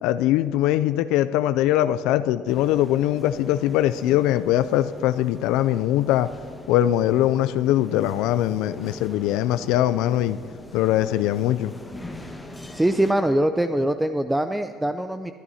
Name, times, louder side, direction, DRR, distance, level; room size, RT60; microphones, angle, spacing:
voice 1, 0.0-6.3 6.7-10.4 10.7-11.7, left 13 dB, 75° left, 12 dB, 0.3 m, -22 dB
sound 1, 2.5-13.1, left 1 dB, 10° left, 1.4 m, -41 dB
voice 2, 12.7-15.3, right 1 dB, 10° right, 9 dB, 0.5 m, -23 dB
23.0 x 10.5 x 2.8 m, 2.1 s
hypercardioid pair, 70°, 0 cm